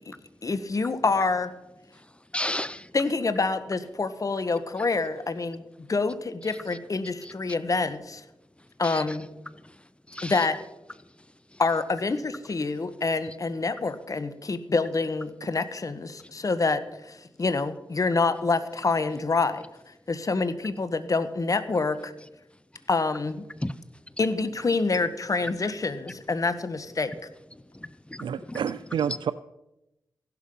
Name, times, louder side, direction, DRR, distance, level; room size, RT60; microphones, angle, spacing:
voice 1, 0.4-1.5 2.9-5.6 5.9-8.2 8.8-9.3 10.2-10.6 11.6-19.6 20.1-22.1 22.9-23.5 24.2-27.1, left 3 dB, 45° left, 12 dB, 1.3 m, -27 dB
voice 2, 1.9-2.9 7.2-7.3 8.6-9.2 9.5-10.5 11.0-11.1 11.5-11.6 13.2-13.4 16.2-16.3 23.6-23.8 27.5-28.6, left 1 dB, 15° left, 16 dB, 0.7 m, -36 dB
voice 3, 28.2-29.3, right 8 dB, 85° right, 13 dB, 0.4 m, -29 dB
15.5 x 12.0 x 5.4 m, 0.90 s
cardioid pair, 60°, 8 cm